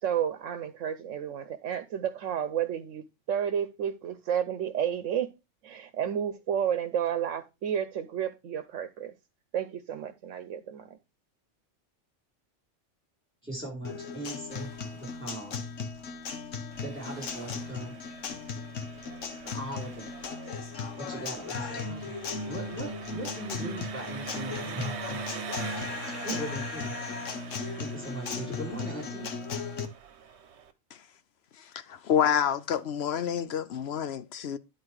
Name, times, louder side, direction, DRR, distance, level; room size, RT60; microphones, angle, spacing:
voice 1, 0.0-5.3 5.6-9.1 9.5-11.0, right 9 dB, 85° right, 1.1 m, -31 dB
voice 2, 13.4-14.7 15.0-15.6 16.5-17.9 19.4-20.1 21.0-22.1 22.4-25.2 26.2-26.9 27.8-29.3, right 1 dB, 10° right, 4.6 m, -39 dB
Guitar, 13.8-29.9, left 4 dB, 85° left, 1.4 m, -36 dB
sound 1, 14.5-20.3, equal, 20° left, 4.6 m, -57 dB
Engine, 16.7-30.7, right 7 dB, 65° right, 1.2 m, -45 dB
voice 3, 31.9-34.6, left 8 dB, 60° left, 0.9 m, -28 dB
10.5 x 4.6 x 4.7 m
omnidirectional pair, 1.3 m